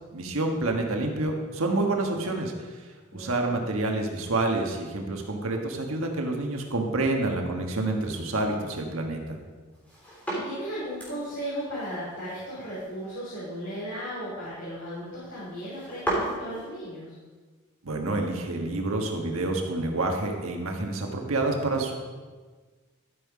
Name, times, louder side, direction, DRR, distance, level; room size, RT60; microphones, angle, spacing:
voice 1, 0.1-2.8 3.1-9.4 17.8-22.0, right 2 dB, 85° right, 2 dB, 1.4 m, -28 dB
voice 2, 3.1-3.6 9.9-17.2, equal, 65° left, -9 dB, 3.1 m, -36 dB
sound 1, 9.7-16.7, right 1 dB, 5° left, 3.4 m, -36 dB
13.5 x 5.7 x 4.9 m, 1.4 s
head